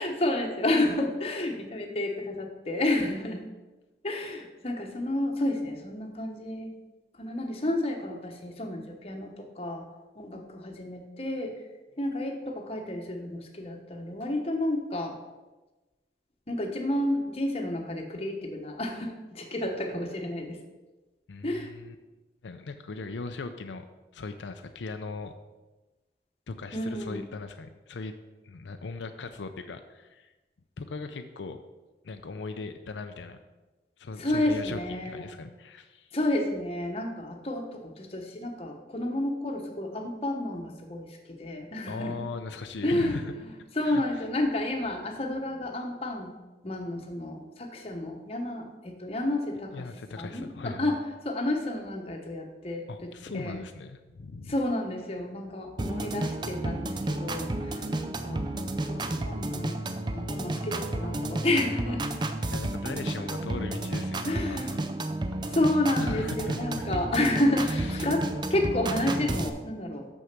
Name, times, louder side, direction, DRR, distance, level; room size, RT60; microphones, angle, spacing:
voice 1, 0.0-3.4 4.0-6.7 7.2-9.3 9.6-9.8 10.2-11.5 12.0-15.1 16.5-20.6 21.4-21.7 26.7-27.2 34.2-35.3 36.1-42.2 42.8-43.2 43.8-46.3 46.6-49.8 50.2-51.0 51.2-53.6 54.5-58.4 58.9-59.8 60.1-62.0 64.2-64.7 65.4-68.2 68.5-70.1, left 1 dB, 35° left, 2 dB, 1.1 m, -30 dB
voice 2, 21.3-22.0 22.4-23.9 24.1-25.3 26.5-28.1 28.4-30.3 30.8-31.6 32.0-33.4 34.0-34.8 35.0-36.1 41.9-43.3 43.8-44.3 49.7-50.9 52.9-54.6 62.5-64.9 66.0-66.9 67.6-68.1, left 3 dB, 85° left, 7 dB, 0.5 m, -39 dB
sound 1, 55.8-69.5, right 2 dB, 25° right, 0.4 m, -32 dB
6.4 x 6.3 x 5.9 m, 1.1 s
head